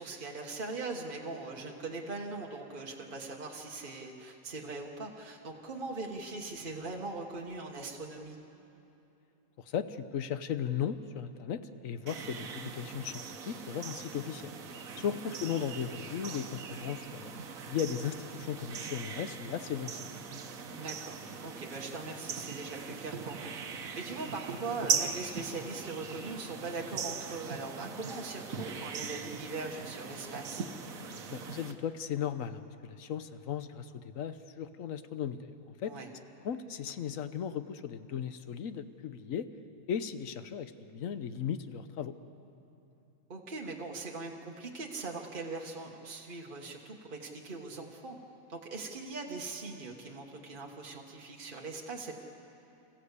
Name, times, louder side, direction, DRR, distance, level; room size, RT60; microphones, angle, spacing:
voice 1, 0.0-8.4 15.0-15.2 20.7-21.2 21.4-23.5 23.9-30.6 35.8-36.1 43.3-48.2 48.5-52.1, right 3 dB, 35° right, 0 dB, 1.7 m, -41 dB
voice 2, 9.7-14.6 15.0-17.3 17.7-20.0 31.3-35.5 35.8-35.9 36.4-39.5 39.9-42.1, left 8 dB, 70° left, 11 dB, 1.2 m, -36 dB
sound 1, 12.1-31.7, right 6 dB, 70° right, 1.5 m, -40 dB
26.5 x 15.0 x 8.2 m, 2.9 s
omnidirectional pair, 1.5 m